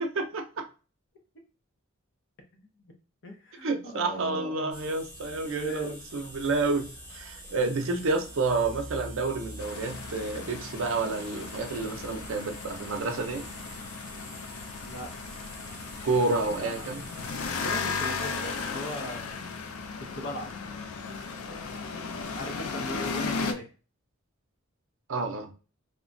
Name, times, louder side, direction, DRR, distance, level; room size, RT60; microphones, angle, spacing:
voice 1, 0.2-0.5 3.6-13.4 16.0-17.0 25.1-25.5, right 3 dB, 65° right, 0.5 m, -29 dB
voice 2, 3.2-4.8 5.4-6.1 14.8-15.2 16.3-16.8 17.6-19.2 20.0-20.5 21.5-22.1 22.3-23.7, equal, 60° left, 0.7 m, -39 dB
sound 1, 4.7-17.5, right 1 dB, 5° left, 0.8 m, -45 dB
sound 2, 9.6-23.5, left 4 dB, 90° left, 0.4 m, -36 dB
2.9 x 2.2 x 2.5 m
head